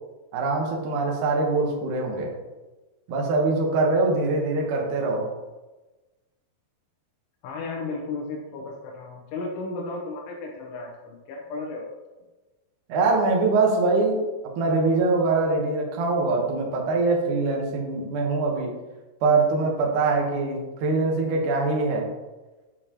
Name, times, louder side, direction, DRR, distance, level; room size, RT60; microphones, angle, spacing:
voice 1, 0.3-2.3 3.1-5.3 12.9-14.2 14.6-18.7 19.2-22.1, right 3 dB, 70° right, 0 dB, 1.9 m, -23 dB
voice 2, 7.4-11.9, left 3 dB, 85° left, -2 dB, 3.4 m, -34 dB
8.3 x 6.5 x 3.0 m, 1.2 s
omnidirectional pair, 5.3 m